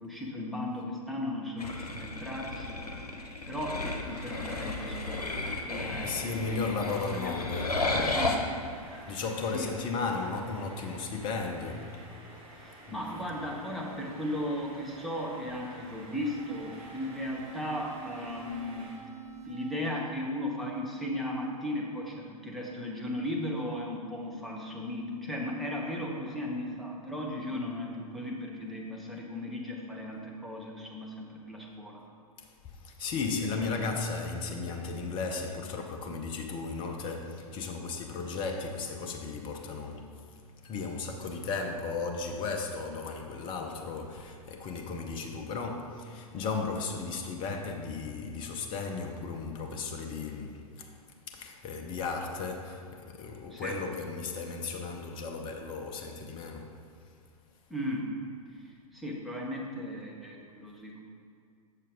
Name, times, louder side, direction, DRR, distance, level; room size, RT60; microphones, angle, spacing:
voice 1, 0.0-2.8 3.5-5.4 5.7-6.6 7.1-7.3 8.0-8.4 9.5-9.7 12.6-18.9 19.4-32.0 33.6-33.8 53.5-53.8 57.7-58.1 58.6-61.0, left 1 dB, ahead, -3 dB, 1.0 m, -36 dB
sound 1, 1.6-8.4, left 2 dB, 85° left, 0.8 m, -33 dB
sound 2, 4.0-19.0, right 1 dB, 30° right, 1.3 m, -50 dB
voice 2, 6.0-8.3 9.0-12.0 12.9-13.0 32.4-40.2 40.6-51.0 51.3-56.8, left 4 dB, 25° left, 3 dB, 0.7 m, -35 dB
sound 3, 16.2-21.3, right 5 dB, 80° right, 1.6 m, -48 dB
7.0 x 6.6 x 3.6 m, 2.3 s
figure-of-eight pair, 105°, 19 cm